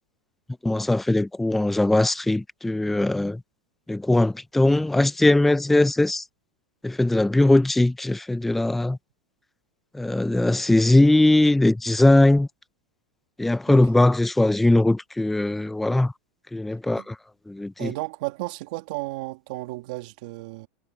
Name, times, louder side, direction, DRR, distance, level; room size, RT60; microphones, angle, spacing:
voice 1, 0.6-3.4 3.9-6.2 6.8-9.0 9.9-12.5 13.4-16.1 16.5-17.2 17.5-17.9, left 2 dB, 5° left, 0.4 m, -20 dB
voice 2, 17.8-20.7, right 21 dB, 60° right, 2.2 m, -33 dB
supercardioid pair, 150°, 5 cm